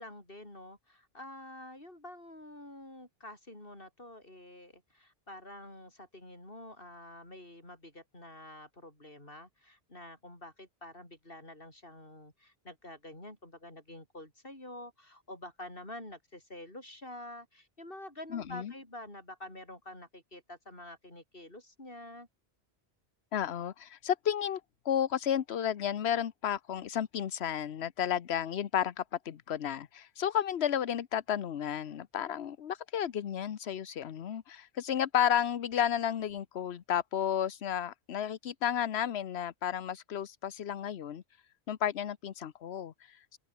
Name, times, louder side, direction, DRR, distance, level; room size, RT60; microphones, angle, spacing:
voice 1, 0.0-22.3, left 1 dB, 60° left, 7.2 m, -48 dB
voice 2, 18.3-18.7 23.3-41.2 41.7-43.4, left 9 dB, 80° left, 1.1 m, -32 dB
open air
omnidirectional pair, 1.1 m